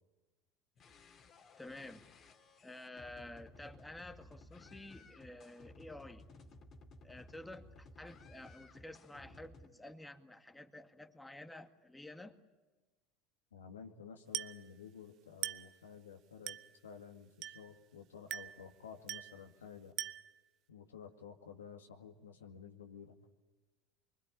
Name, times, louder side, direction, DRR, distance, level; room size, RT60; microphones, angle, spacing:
sound 1, 0.8-9.7, left 2 dB, 40° left, 2.8 m, -58 dB
voice 1, 1.6-2.1 2.6-6.3 7.0-12.4, left 1 dB, 10° left, 6 dB, 2.0 m, -51 dB
voice 2, 13.5-16.6 16.8-19.9 20.7-23.2, left 7 dB, 80° left, 4 dB, 2.1 m, -52 dB
Glass, 14.3-14.7 15.4-15.8 16.5-16.8 17.4-17.8 18.3-18.7 19.1-19.4 20.0-20.4, right 13 dB, 50° right, 1.0 m, -42 dB
25.5 x 23.5 x 8.6 m, 1.2 s
hypercardioid pair, 75°, 0 cm